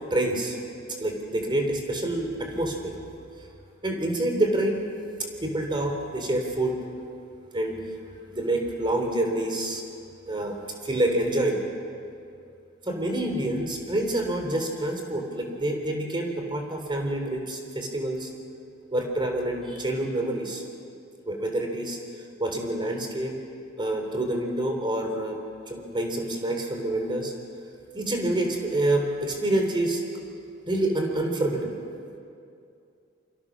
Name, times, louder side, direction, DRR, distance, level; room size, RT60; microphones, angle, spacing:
voice 1, 0.1-0.6 1.0-2.9 3.8-4.8 5.4-6.8 7.5-7.8 8.3-9.8 10.3-10.6 10.8-11.6 12.8-18.3 18.9-20.6 21.3-22.0 22.4-23.4 23.8-25.4 25.7-27.3 27.9-30.0 30.6-31.8, right 1 dB, 25° right, 3 dB, 3.6 m, -27 dB
28.0 x 25.5 x 6.3 m, 2.5 s
head